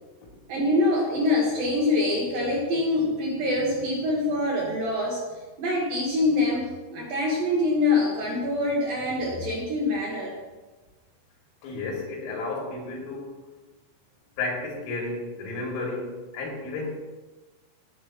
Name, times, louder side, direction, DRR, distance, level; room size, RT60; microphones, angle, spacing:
voice 1, 0.5-5.2 5.6-10.3, left 2 dB, 65° right, -3 dB, 2.4 m, -25 dB
voice 2, 11.6-13.3 14.4-16.9, left 3 dB, 85° left, -2 dB, 5.3 m, -32 dB
17.0 x 9.8 x 3.0 m, 1.2 s
omnidirectional pair, 6.0 m